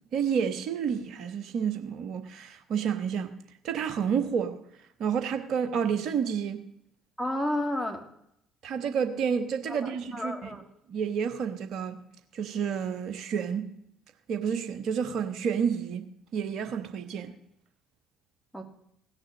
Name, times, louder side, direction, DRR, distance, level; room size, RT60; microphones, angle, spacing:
voice 1, 0.0-3.3 3.6-4.6 5.0-6.6 8.6-10.5 10.9-12.0 12.3-13.7 14.3-17.3, right 7 dB, 55° right, 1.3 m, -30 dB
voice 2, 7.2-8.1 9.7-10.6 18.5-18.6, left 1 dB, 5° left, 2.5 m, -31 dB
16.5 x 6.6 x 6.6 m
figure-of-eight pair, 50°, 0 cm